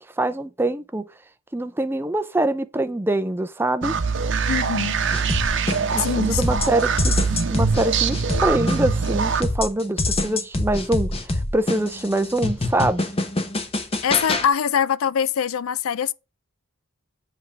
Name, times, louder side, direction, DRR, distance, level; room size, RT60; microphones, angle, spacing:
voice 1, 0.2-1.0 1.5-4.0 5.9-13.1, right 1 dB, 10° right, 0.4 m, -24 dB
sound 1, 3.8-9.4, right 5 dB, 55° right, 0.8 m, -23 dB
voice 2, 4.5-5.0 6.0-6.6 14.0-16.1, left 8 dB, 75° left, 0.4 m, -23 dB
sound 2, 5.1-6.1 6.4-9.1 9.4-14.5, left 2 dB, 25° left, 1.0 m, -25 dB
7.9 x 3.5 x 5.6 m
head